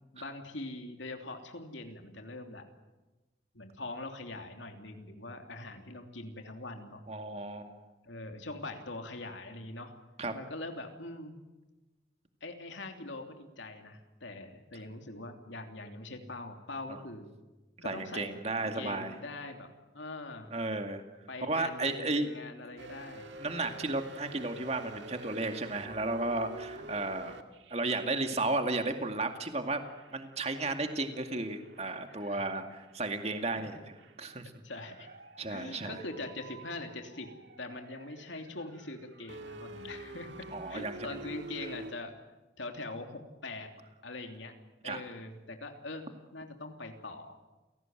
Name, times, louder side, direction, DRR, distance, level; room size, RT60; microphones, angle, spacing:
voice 1, 0.1-2.6 3.5-7.0 8.0-9.9 10.3-11.4 12.4-17.3 17.8-19.7 19.9-20.5 21.3-23.3 32.1-32.4 33.6-33.7 34.6-35.1 35.5-37.3 37.6-42.1 42.6-43.7 44.0-44.5 44.8-46.1 46.3-47.4, left 2 dB, 75° left, 4 dB, 3.1 m, -43 dB
voice 2, 7.1-7.9 10.2-10.3 16.9-17.0 17.8-19.1 20.5-21.0 21.4-22.3 23.4-27.3 27.7-29.8 30.1-34.5 35.4-36.0 40.5-41.2 44.8-45.0, right 2 dB, 35° right, 6 dB, 2.3 m, -34 dB
sound 1, 22.8-29.3 29.8-41.9, right 2 dB, 70° right, 2.0 m, -49 dB
29.5 x 18.0 x 9.2 m, 1.1 s
head